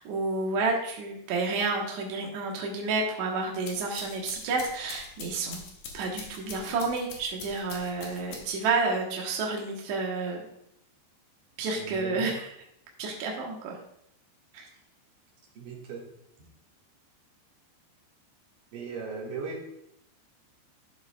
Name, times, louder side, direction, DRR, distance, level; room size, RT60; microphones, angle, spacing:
voice 1, 0.0-5.6 5.9-10.4 11.6-12.5 13.0-13.8 14.5-14.7, right 3 dB, 70° right, -1 dB, 1.7 m, -30 dB
sound 1, 3.4-8.7, left 4 dB, 65° left, 1.9 m, -44 dB
voice 2, 11.7-12.4 15.5-16.0 18.7-19.7, right 4 dB, 55° right, -2 dB, 3.1 m, -38 dB
13.5 x 8.0 x 2.3 m, 0.76 s
omnidirectional pair, 5.2 m